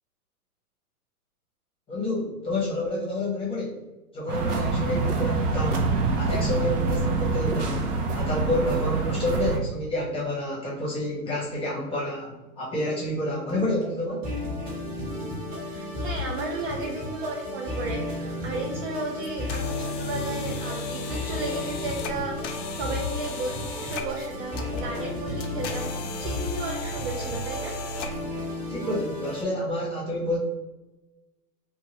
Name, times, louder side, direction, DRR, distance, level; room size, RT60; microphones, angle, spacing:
voice 1, 1.9-3.8 4.1-14.2 28.7-30.4, left 1 dB, 10° left, -5 dB, 0.8 m, -29 dB
sound 1, 4.3-9.6, right 3 dB, 80° right, 0.8 m, -26 dB
sound 2, 13.5-29.4, left 2 dB, 20° right, 1.0 m, -33 dB
voice 2, 15.6-22.4 22.8-25.9 26.2-27.7, right 3 dB, 45° right, 0 dB, 0.6 m, -34 dB
sound 3, 19.2-28.4, left 2 dB, 55° left, 0.6 m, -37 dB
2.6 x 2.5 x 2.8 m, 1.1 s
hypercardioid pair, 120°, 46 cm